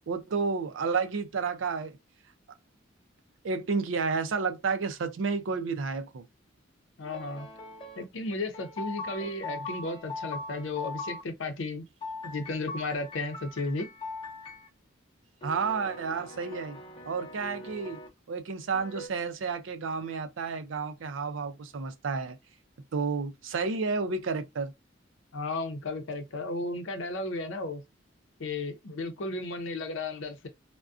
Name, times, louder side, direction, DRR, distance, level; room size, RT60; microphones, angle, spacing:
voice 1, 0.1-2.0 3.4-6.3 9.2-9.3 15.4-16.8 17.1-18.0 18.3-22.4 22.9-24.7, right 4 dB, 75° right, 0.4 m, -31 dB
voice 2, 7.0-7.5 8.0-11.9 12.2-13.9 25.3-27.8 28.4-30.5, left 2 dB, 80° left, 0.6 m, -34 dB
sound 1, 7.0-8.0 8.5-11.2 12.0-14.7 15.4-18.1 18.7-19.1, left 2 dB, 25° left, 0.6 m, -41 dB
2.4 x 2.1 x 2.4 m
head